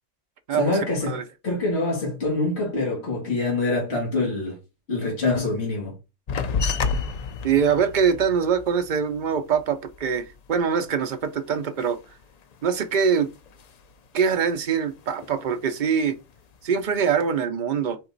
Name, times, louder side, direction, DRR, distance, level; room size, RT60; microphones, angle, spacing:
voice 1, 0.6-1.2 1.4-4.6 4.9-6.0, left 2 dB, 55° left, 2.1 m, -25 dB
sound 1, 6.3-11.2 11.5-12.9 13.2-14.1 14.4-15.7 16.1-16.8, left 4 dB, 75° left, 0.3 m, -31 dB
voice 2, 7.4-12.0 12.6-13.3 14.1-16.2 16.6-18.0, right 6 dB, 55° right, 0.5 m, -23 dB
4.6 x 2.9 x 3.9 m
omnidirectional pair, 1.3 m